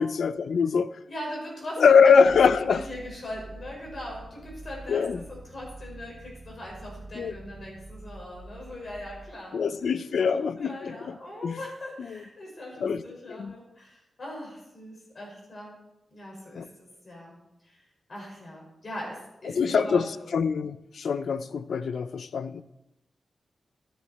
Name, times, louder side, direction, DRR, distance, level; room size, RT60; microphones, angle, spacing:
voice 1, 0.0-0.9 1.8-2.8 4.9-5.2 7.2-7.3 9.5-11.0 11.4-11.6 12.1-12.2 12.8-13.0 13.3-13.5 16.6-16.7 19.5-22.6, left 6 dB, 75° left, 14 dB, 0.5 m, -23 dB
voice 2, 1.1-2.4 2.6-15.8 16.1-17.4 17.6-17.8 18.1-20.3, left 1 dB, 40° left, -2 dB, 5.1 m, -41 dB
sound 1, 2.2-9.3, right 2 dB, 70° right, 2.4 m, -46 dB
13.0 x 10.0 x 4.2 m, 0.92 s
wide cardioid pair, 120°, 0 cm